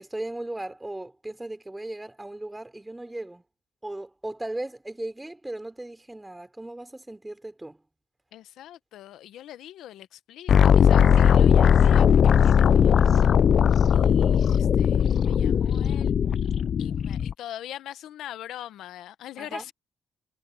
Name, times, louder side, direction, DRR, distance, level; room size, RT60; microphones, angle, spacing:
voice 1, 0.0-3.4 3.8-7.8 19.4-19.6, right 1 dB, 10° right, 4.2 m, -37 dB
voice 2, 8.3-13.4 13.9-16.1 16.8-19.7, left 12 dB, 80° left, 0.9 m, -43 dB
sound 1, 10.5-17.3, left 8 dB, 55° left, 0.3 m, -19 dB
cardioid pair, 90°, 0 cm